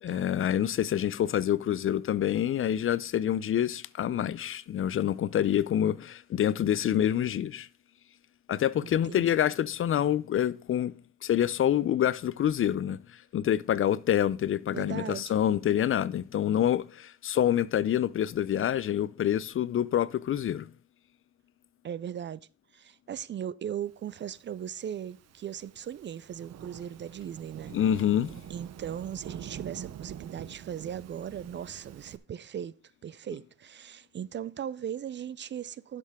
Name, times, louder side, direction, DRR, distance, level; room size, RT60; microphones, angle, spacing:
voice 1, 0.0-7.7 8.5-10.9 11.2-20.7 27.7-28.4, left 10 dB, 45° left, 0.4 m, -27 dB
voice 2, 8.8-9.4 14.7-15.3 21.8-22.5 22.7-27.7 28.5-32.7 33.0-36.0, right 9 dB, 40° right, 0.4 m, -38 dB
Thunderstorm / Rain, 24.5-32.2, right 9 dB, 60° right, 0.8 m, -45 dB
11.0 x 6.6 x 3.6 m
cardioid pair, 90°, 30 cm